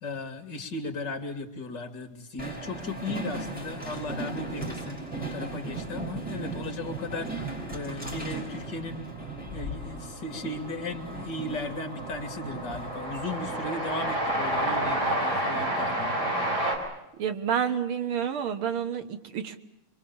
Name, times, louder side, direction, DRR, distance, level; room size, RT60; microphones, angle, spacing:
voice 1, 0.0-9.1 9.5-16.2, left 2 dB, 50° left, 7 dB, 3.2 m, -36 dB
Train, 2.4-14.9, right 2 dB, 5° right, 5.7 m, -38 dB
Train 2, 9.3-9.4 9.6-16.8, right 1 dB, 45° right, 5.9 m, -30 dB
voice 2, 17.2-19.6, right 8 dB, 75° right, 9 dB, 2.3 m, -29 dB
27.0 x 23.5 x 7.1 m, 0.86 s
omnidirectional pair, 2.4 m